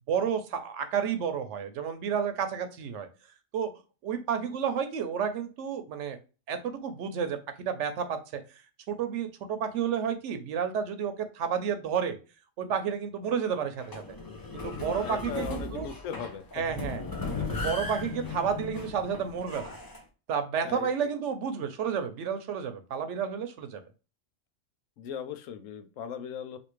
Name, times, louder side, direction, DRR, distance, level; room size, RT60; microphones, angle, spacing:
voice 1, 0.1-3.1 3.5-3.7 4.0-6.2 6.5-8.2 8.9-12.2 12.6-14.2 14.5-15.9 16.5-17.0 17.4-19.8 20.3-23.8, right 7 dB, 70° right, 8 dB, 0.9 m, -31 dB
sound 1, 13.8-20.0, left 3 dB, 30° left, 0.4 m, -37 dB
voice 2, 15.0-16.4 20.6-20.9 25.0-26.6, left 7 dB, 90° left, 10 dB, 1.0 m, -38 dB
3.4 x 2.7 x 3.0 m, 0.33 s
omnidirectional pair, 1.3 m